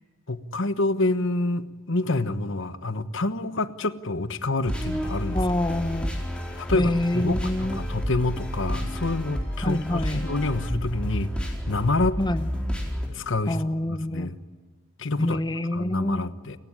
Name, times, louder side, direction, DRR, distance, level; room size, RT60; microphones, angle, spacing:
voice 1, 0.3-5.4 6.6-12.2 13.1-14.4 15.0-15.4 15.7-16.6, left 2 dB, 65° left, 13 dB, 1.2 m, -27 dB
sound 1, 4.6-13.1, equal, 5° left, 4.4 m, -30 dB
voice 2, 5.3-6.1 6.7-7.8 9.6-10.2 12.2-12.5 13.5-14.3 15.2-16.2, left 1 dB, 20° left, 12 dB, 0.9 m, -26 dB
29.0 x 16.5 x 9.8 m, 1.5 s
head